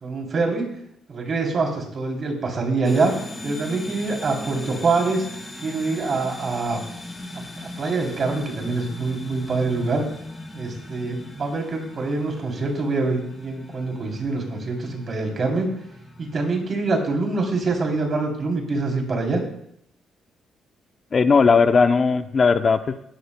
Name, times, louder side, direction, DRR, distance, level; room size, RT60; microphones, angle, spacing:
voice 1, 0.0-0.7 1.1-3.1 3.4-5.3 5.6-6.8 7.3-7.4 7.8-10.0 10.5-15.7 16.2-19.4, right 3 dB, 45° right, 1 dB, 3.1 m, -25 dB
sound 1, 2.8-18.2, left 2 dB, 20° left, 2.1 m, -39 dB
voice 2, 21.1-23.0, left 5 dB, 40° left, 10 dB, 0.6 m, -17 dB
16.0 x 12.5 x 2.2 m, 0.75 s
cardioid pair, 90°, 0 cm